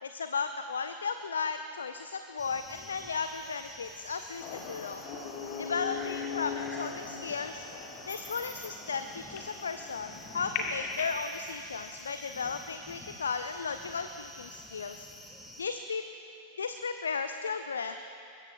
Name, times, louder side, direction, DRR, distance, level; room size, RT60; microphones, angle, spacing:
voice 1, 0.0-5.0 5.6-7.6 8.1-15.1 15.6-16.0 16.6-17.9, left 5 dB, 70° left, 9 dB, 0.5 m, -35 dB
sound 1, 2.4-15.6, left 2 dB, 10° left, 1.7 m, -49 dB
sound 2, 4.4-11.2, left 5 dB, 45° left, 2.0 m, -39 dB
24.0 x 21.5 x 2.3 m, 2.7 s
figure-of-eight pair, 90°, 0 cm